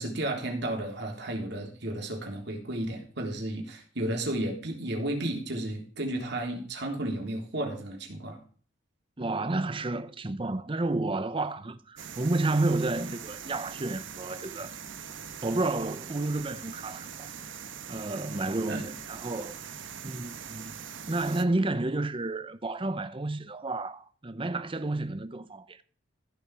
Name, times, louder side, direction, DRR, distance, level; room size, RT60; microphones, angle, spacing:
voice 1, 0.0-8.4 18.7-18.9, right 1 dB, 60° right, 3.5 m, -33 dB
voice 2, 9.2-14.7 15.4-17.3 17.9-19.6 20.0-25.8, right 2 dB, 25° right, 0.7 m, -31 dB
sound 1, 12.0-21.5, right 7 dB, 80° right, 1.1 m, -42 dB
15.0 x 7.1 x 4.8 m
head